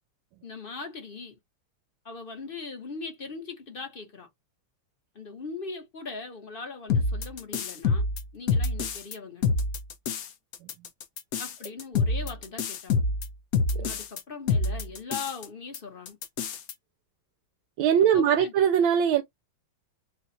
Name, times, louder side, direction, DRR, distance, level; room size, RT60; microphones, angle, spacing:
voice 1, 0.4-1.4 2.0-4.3 5.1-8.1 8.3-9.5 11.4-13.0 13.7-16.2 18.1-18.5, left 4 dB, 35° left, 1.0 m, -40 dB
sound 1, 6.9-9.1 9.4-10.3 10.5-14.2 14.5-15.5 15.7-15.8 16.1-16.7, left 4 dB, 60° left, 1.0 m, -26 dB
voice 2, 17.8-19.2, right 8 dB, 80° right, 1.4 m, -21 dB
4.3 x 2.4 x 4.1 m
omnidirectional pair, 2.2 m